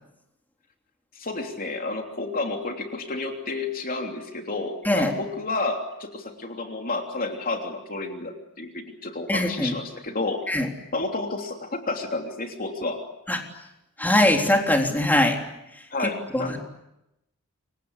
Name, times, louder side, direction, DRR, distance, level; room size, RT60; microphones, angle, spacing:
voice 1, 1.1-10.4 10.9-13.0 15.9-16.6, left 3 dB, 40° left, 3 dB, 3.2 m, -31 dB
voice 2, 9.3-9.8 10.5-10.7 13.3-13.4 14.0-15.4 15.8-16.6, left 1 dB, 10° left, 2 dB, 3.7 m, -22 dB
29.0 x 25.0 x 8.2 m, 0.88 s
head